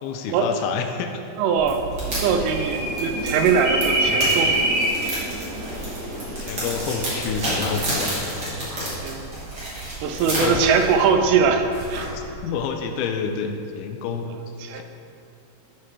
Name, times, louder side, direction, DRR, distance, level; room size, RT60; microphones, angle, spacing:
voice 1, 0.0-1.1 6.3-8.1 8.5-9.0 10.1-10.7 12.0-14.3 14.7-14.8, left 6 dB, 85° left, 5 dB, 3.1 m, -29 dB
voice 2, 1.4-1.8 2.2-4.6 5.0-5.2 9.0-9.3 10.0-12.1 14.7-14.8, right 6 dB, 90° right, 6 dB, 3.3 m, -21 dB
sound 1, 1.6-12.3, right 1 dB, 30° right, 2.3 m, -30 dB
sound 2, 2.0-7.6, right 1 dB, 65° right, 4.9 m, -26 dB
13.5 x 6.0 x 4.9 m, 2.5 s
omnidirectional pair, 5.5 m